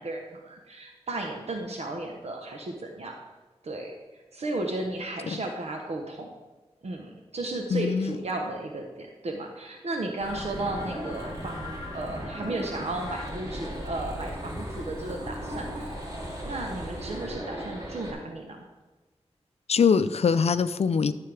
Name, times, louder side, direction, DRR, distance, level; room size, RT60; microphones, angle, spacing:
voice 1, 0.0-3.2 3.6-3.9 4.3-6.3 6.8-16.0 16.4-18.7, right 2 dB, 70° right, 2 dB, 1.0 m, -34 dB
voice 2, 7.7-8.1 19.7-21.1, left 6 dB, 70° left, 13 dB, 0.4 m, -23 dB
sound 1, 10.2-18.1, equal, 35° right, 2.1 m, -36 dB
13.0 x 6.6 x 3.4 m, 1.2 s
wide cardioid pair, 80°, 11 cm